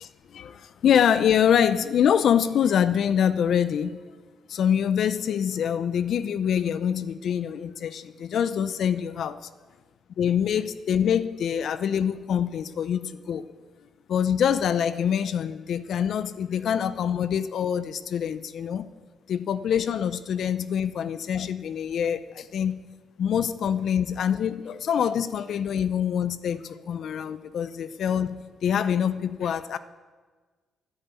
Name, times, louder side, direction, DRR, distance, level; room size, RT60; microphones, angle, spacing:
voice 1, 0.0-4.0 4.5-9.4 10.2-13.4 14.1-18.9 19.3-22.8 23.2-29.8, left 8 dB, 65° left, 14 dB, 0.7 m, -25 dB
10.5 x 9.9 x 8.3 m, 1.4 s
cardioid pair, 90°, 0 cm